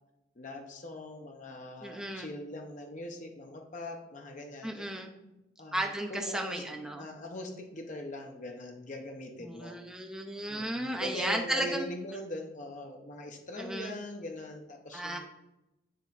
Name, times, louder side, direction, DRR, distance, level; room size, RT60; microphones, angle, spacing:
voice 1, 0.4-4.9 5.6-6.6 6.9-9.8 10.5-15.2, left 1 dB, 40° left, 3 dB, 0.8 m, -41 dB
voice 2, 1.8-2.3 4.6-5.1 5.7-7.1 9.4-11.9 13.6-13.9 14.9-15.2, right 1 dB, 5° right, 1 dB, 0.6 m, -34 dB
9.2 x 3.1 x 4.0 m, 0.93 s
head